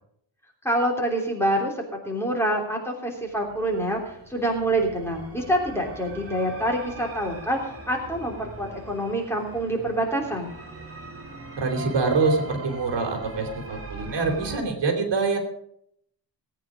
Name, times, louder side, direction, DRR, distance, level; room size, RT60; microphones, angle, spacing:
voice 1, 0.6-10.5, right 1 dB, 5° left, 0 dB, 3.2 m, -26 dB
sound 1, 3.2-14.6, right 2 dB, 30° right, 3.0 m, -41 dB
voice 2, 11.6-15.4, right 4 dB, 70° right, 3 dB, 3.5 m, -25 dB
18.5 x 9.2 x 5.1 m, 0.70 s
wide cardioid pair, 155°, 44 cm